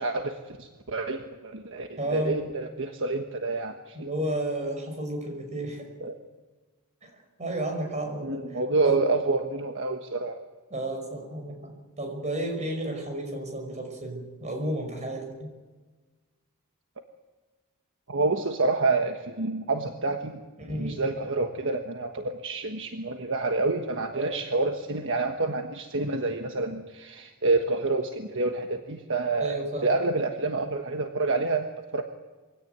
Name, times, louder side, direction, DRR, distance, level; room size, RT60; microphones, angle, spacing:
voice 1, 0.0-4.1 6.0-6.2 8.2-10.4 18.1-20.4 20.8-32.0, right 3 dB, 60° right, 5 dB, 1.4 m, -28 dB
voice 2, 2.0-2.4 3.9-5.9 7.0-7.1 7.4-8.4 8.8-9.0 10.7-15.5 20.6-21.0 24.1-24.4 29.4-29.9, right 1 dB, 30° right, 3 dB, 5.7 m, -32 dB
24.0 x 17.0 x 9.5 m, 1.3 s
head